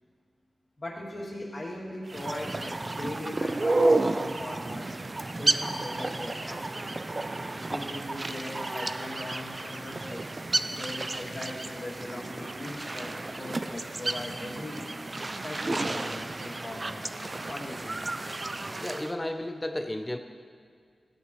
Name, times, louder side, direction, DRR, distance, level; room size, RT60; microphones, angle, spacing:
voice 1, 0.8-4.9 5.3-7.0 7.5-10.2 10.7-13.1 13.4-14.9 15.4-17.1 17.4-18.3, left 1 dB, 40° left, -6 dB, 2.6 m, -39 dB
sound 1, 2.1-19.1, right 2 dB, 30° right, 0.4 m, -31 dB
voice 2, 18.8-20.2, left 1 dB, 15° left, 6 dB, 0.7 m, -33 dB
16.0 x 8.7 x 3.2 m, 2.1 s
wide cardioid pair, 110°, 0 cm